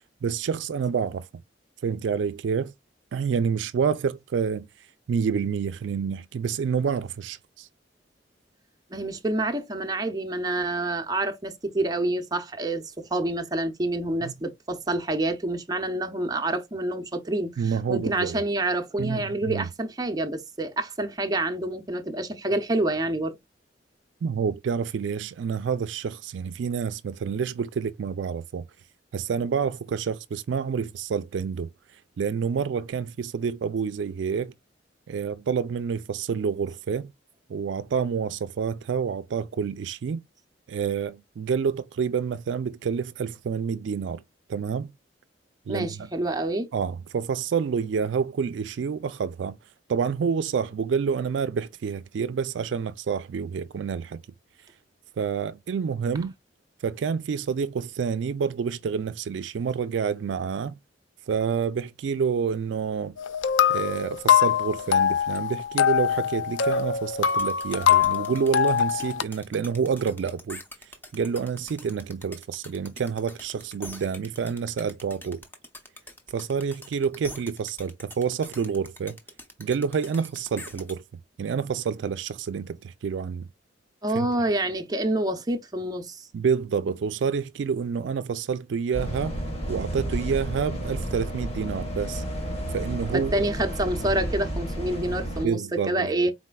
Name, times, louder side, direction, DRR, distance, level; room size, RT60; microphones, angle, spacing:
voice 1, 0.2-1.3 1.8-2.7 3.1-4.7 5.1-7.7 14.2-14.3 17.6-18.4 19.0-19.7 24.2-28.7 29.1-31.7 32.2-34.5 35.1-37.1 37.5-40.2 40.7-44.2 44.5-44.9 45.7-45.9 46.7-49.6 49.9-54.2 55.2-56.3 56.8-60.8 61.3-63.1 63.7-70.6 71.1-75.4 76.3-79.2 79.6-81.0 81.4-83.5 84.1-84.3 86.3-89.4 89.7-92.2 92.7-93.5 95.4-96.3, right 6 dB, 75° right, 0.4 m, -28 dB
voice 2, 8.9-23.4 45.7-46.7 84.0-86.3 93.1-96.3, right 1 dB, 20° right, 0.6 m, -27 dB
sound 1, 63.2-69.2, left 8 dB, 85° left, 0.4 m, -23 dB
sound 2, 67.3-80.9, left 1 dB, 10° left, 0.7 m, -44 dB
sound 3, 88.9-95.5, right 1 dB, 35° left, 1.4 m, -31 dB
4.2 x 4.1 x 2.2 m
head